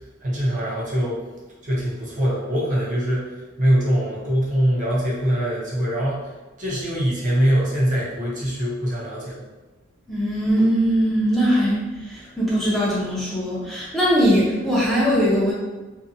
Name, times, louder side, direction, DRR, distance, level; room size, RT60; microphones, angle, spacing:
voice 1, 0.2-1.2 1.6-3.3 3.6-6.2 6.6-9.4, equal, 40° right, -6 dB, 0.6 m, -23 dB
voice 2, 10.1-15.5, equal, ahead, -8 dB, 0.6 m, -20 dB
2.6 x 2.1 x 2.6 m, 1.2 s
head